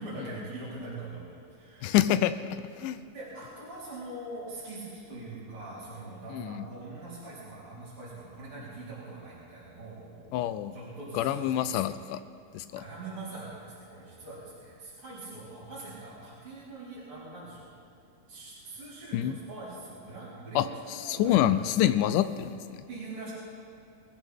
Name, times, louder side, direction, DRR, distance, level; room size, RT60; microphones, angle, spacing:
voice 1, 0.0-2.0 3.1-11.9 12.8-17.7 18.3-21.6 22.9-23.3, right 2 dB, 45° right, -12 dB, 5.0 m, -43 dB
voice 2, 1.8-3.0 6.3-6.7 10.3-10.7 11.1-12.2 12.5-12.8 19.1-19.4 20.6-22.9, left 11 dB, 85° left, 12 dB, 2.2 m, -27 dB
24.0 x 14.5 x 3.6 m, 2.5 s
omnidirectional pair, 3.6 m